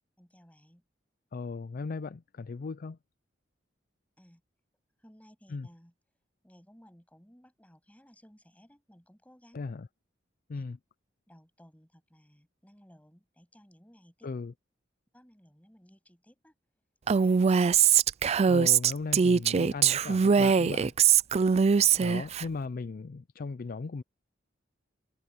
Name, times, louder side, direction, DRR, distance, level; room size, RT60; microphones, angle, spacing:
voice 1, 0.2-0.8 4.2-4.4 5.0-5.9 6.4-9.6 10.5-10.6 11.3-14.3 15.1-16.5 17.1-17.8 21.3-21.8, equal, 10° left, 7.9 m, -58 dB
voice 2, 1.3-3.0 5.5-5.7 9.5-9.9 10.5-10.8 14.2-14.5 18.4-20.9 22.0-24.0, left 4 dB, 50° left, 0.4 m, -37 dB
Female speech woman speaking, 17.1-22.4, right 6 dB, 35° right, 0.4 m, -22 dB
head